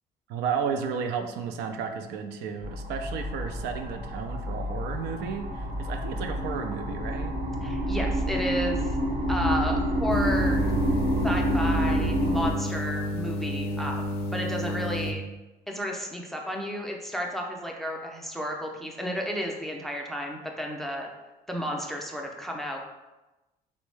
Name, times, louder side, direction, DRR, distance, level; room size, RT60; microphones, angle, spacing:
voice 1, 0.3-7.3, right 6 dB, 80° right, 6 dB, 0.4 m, -33 dB
sound 1, 2.6-12.5, equal, 65° right, 0.9 m, -28 dB
voice 2, 7.6-8.9 9.3-10.7 11.2-14.0 14.3-15.2 15.7-21.1 21.5-22.8, equal, ahead, 1 dB, 0.4 m, -32 dB
sound 2, 10.1-15.1, left 1 dB, 70° left, 0.4 m, -31 dB
3.5 x 2.1 x 3.1 m, 1.1 s
cardioid pair, 110°, 17 cm